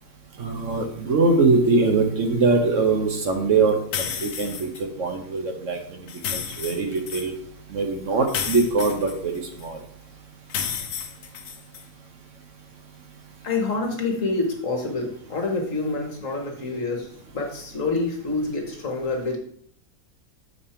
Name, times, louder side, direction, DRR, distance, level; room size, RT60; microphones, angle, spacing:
voice 1, 0.4-4.7 5.0-5.8 6.3-7.3 7.7-9.3 9.6-9.8, right 3 dB, 55° right, 4 dB, 1.2 m, -22 dB
sound 1, 3.9-4.8 6.1-7.3 8.3-9.6 10.5-11.8, left 7 dB, 80° left, 1.2 m, -31 dB
voice 2, 13.4-19.4, left 3 dB, 55° left, 2 dB, 1.7 m, -27 dB
6.8 x 5.3 x 4.3 m, 0.62 s
omnidirectional pair, 1.6 m